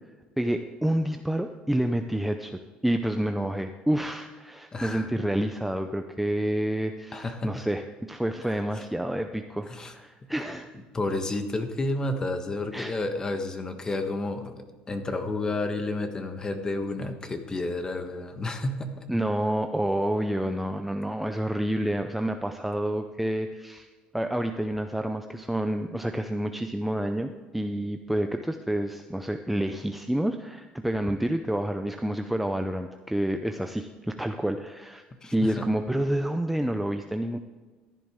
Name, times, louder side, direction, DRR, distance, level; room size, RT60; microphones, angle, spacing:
voice 1, 0.4-10.7 12.7-13.0 19.1-23.9 24.1-35.0 35.3-37.4, right 1 dB, 5° right, 6 dB, 0.6 m, -29 dB
voice 2, 4.7-5.1 7.1-7.7 8.4-8.5 9.7-9.9 10.2-10.6 10.9-19.1 35.2-35.6, left 2 dB, 20° left, 7 dB, 1.4 m, -31 dB
14.5 x 11.0 x 3.7 m, 1.4 s
cardioid pair, 115°, 3 cm